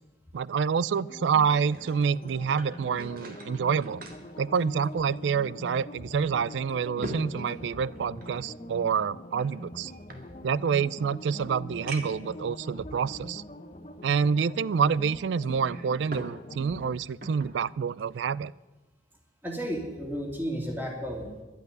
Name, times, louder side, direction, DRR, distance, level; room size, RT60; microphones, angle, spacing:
voice 1, 0.3-4.0 4.4-9.9 10.4-13.4 14.0-18.5, right 6 dB, 80° right, 21 dB, 0.4 m, -27 dB
sound 1, 1.0-16.9, left 1 dB, 35° left, 1.0 m, -43 dB
sound 2, 1.4-5.4 5.8-5.9 6.5-8.4 9.3-10.8 11.3-11.4 11.9-12.3 13.0-13.1 15.4-16.4 16.7-17.6 18.0-18.2, right 1 dB, 55° right, 1.8 m, -43 dB
voice 2, 19.4-21.4, equal, 10° right, 0 dB, 2.8 m, -33 dB
12.0 x 9.2 x 9.6 m, 1.1 s
head